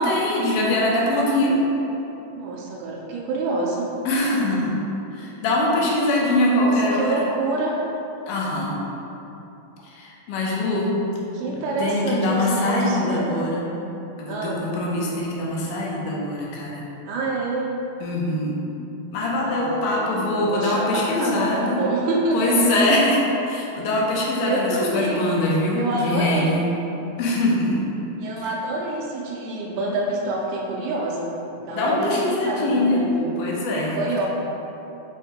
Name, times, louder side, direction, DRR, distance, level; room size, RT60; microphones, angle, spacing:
voice 1, 0.0-1.6 4.1-4.8 5.2-7.2 8.3-8.8 9.8-10.9 11.8-13.7 14.2-16.9 18.0-18.6 19.1-21.9 22.3-26.6 27.2-27.8 31.7-33.1 33.4-34.0, left 1 dB, 85° left, -3 dB, 2.2 m, -23 dB
voice 2, 2.3-3.9 6.5-7.8 11.3-13.6 14.3-14.7 17.1-17.7 19.4-22.7 24.4-25.3 25.8-26.6 28.2-31.3 31.6-33.3 33.9-34.3, right 2 dB, 80° right, -3 dB, 2.0 m, -27 dB
6.4 x 2.1 x 2.8 m, 2.9 s
omnidirectional pair, 3.8 m